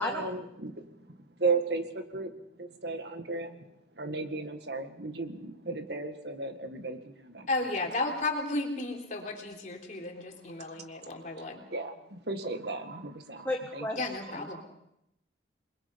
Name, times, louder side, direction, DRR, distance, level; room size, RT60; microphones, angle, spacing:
voice 1, 0.0-7.5 10.7-11.1 11.7-14.1 14.5-14.6, right 3 dB, 65° right, 7 dB, 1.9 m, -35 dB
voice 2, 7.5-11.7 13.9-14.6, left 2 dB, 40° left, 2 dB, 3.6 m, -33 dB
voice 3, 13.4-14.0 14.3-14.4, left 1 dB, 10° left, 1 dB, 1.6 m, -32 dB
28.0 x 21.5 x 5.4 m, 0.77 s
head